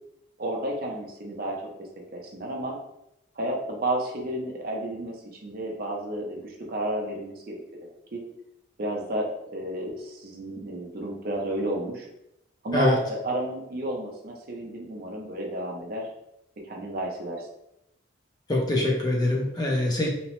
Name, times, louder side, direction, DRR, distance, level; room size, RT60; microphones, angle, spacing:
voice 1, 0.4-1.6 2.1-2.8 3.4-5.2 5.4-7.6 8.1-8.2 8.8-12.1 12.6-16.1 16.6-17.5, right 1 dB, 45° right, 0 dB, 0.5 m, -31 dB
voice 2, 18.5-20.1, left 1 dB, 20° left, -2 dB, 0.4 m, -24 dB
2.9 x 2.0 x 2.9 m, 0.83 s
head